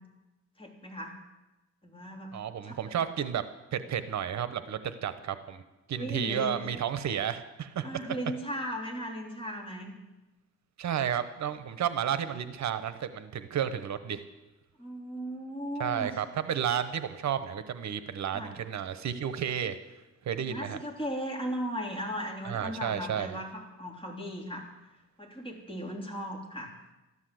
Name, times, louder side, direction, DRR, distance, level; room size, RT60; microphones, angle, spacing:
voice 1, 0.6-1.2 1.8-2.3 2.6-2.9 6.0-6.7 7.8-9.9 14.8-16.2 18.3-18.6 20.5-24.6 25.2-26.7, equal, 15° left, 0 dB, 3.3 m, -37 dB
voice 2, 2.3-3.4 3.7-5.6 5.9-7.9 10.8-14.2 15.8-19.8 20.2-20.8 22.4-23.4, right 9 dB, 65° right, 12 dB, 0.9 m, -32 dB
13.5 x 12.5 x 7.8 m, 1.1 s
cardioid pair, 125°, 30 cm